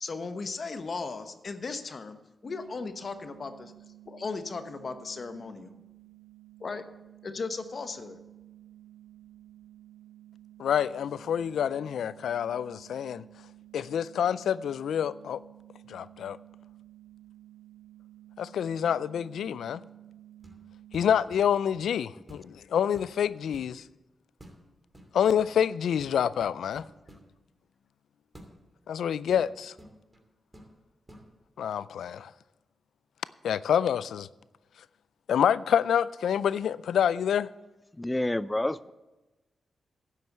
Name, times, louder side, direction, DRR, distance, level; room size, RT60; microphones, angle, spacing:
voice 1, 0.0-3.7 4.1-5.7 6.6-6.8 7.2-8.2, left 4 dB, 55° left, 1.0 m, -36 dB
sound 1, 2.4-21.1, right 13 dB, 75° right, 2.5 m, -53 dB
voice 2, 10.6-13.2 13.7-15.4 15.9-16.4 18.4-19.8 20.9-23.8 25.1-26.8 28.9-29.7 31.6-32.3 33.4-34.3 35.3-37.5, left 8 dB, 85° left, 0.3 m, -27 dB
sound 2, 20.4-20.7 20.9-21.9 22.3-22.6 22.9-23.7 24.4-24.6 24.9-25.6 26.0-27.3 28.3-28.5 29.3-30.2 30.5-30.7 31.1-31.3, equal, 20° right, 2.8 m, -51 dB
voice 3, 38.0-38.9, left 1 dB, 15° left, 0.5 m, -29 dB
10.5 x 7.6 x 8.0 m
cardioid pair, 60°, 0 cm